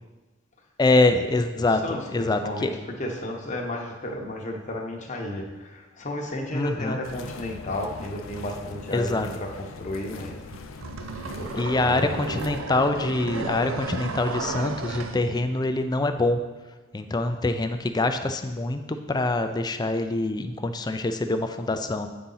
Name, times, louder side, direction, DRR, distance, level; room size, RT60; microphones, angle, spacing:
voice 1, 0.8-2.7 6.5-7.0 8.9-9.3 11.6-16.4 16.9-22.1, left 2 dB, 20° left, 8 dB, 0.4 m, -25 dB
voice 2, 1.5-10.4 11.3-12.2, left 1 dB, 40° left, 1 dB, 0.9 m, -33 dB
sound 1, 7.0-12.6, left 4 dB, 80° left, 0.5 m, -42 dB
sound 2, 10.5-15.2, right 3 dB, 90° right, 0.5 m, -33 dB
8.5 x 4.1 x 3.9 m, 1.2 s
head